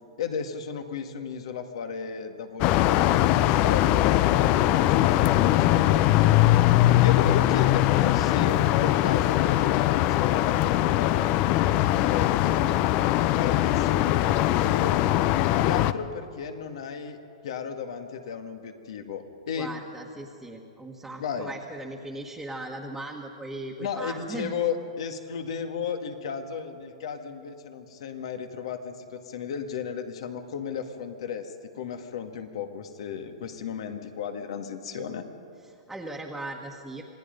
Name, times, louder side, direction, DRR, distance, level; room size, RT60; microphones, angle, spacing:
voice 1, 0.2-6.4 7.0-12.7 13.4-15.0 15.5-17.2 17.4-19.7 21.2-21.5 23.8-31.4 31.7-35.3, left 6 dB, 70° left, 6 dB, 2.2 m, -34 dB
sound 1, 2.6-15.9, left 14 dB, 40° left, 0.6 m, -21 dB
voice 2, 19.5-24.5 35.6-37.0, right 1 dB, 5° right, -2 dB, 1.6 m, -38 dB
26.5 x 18.5 x 5.4 m, 2.5 s
hypercardioid pair, 130°, 3 cm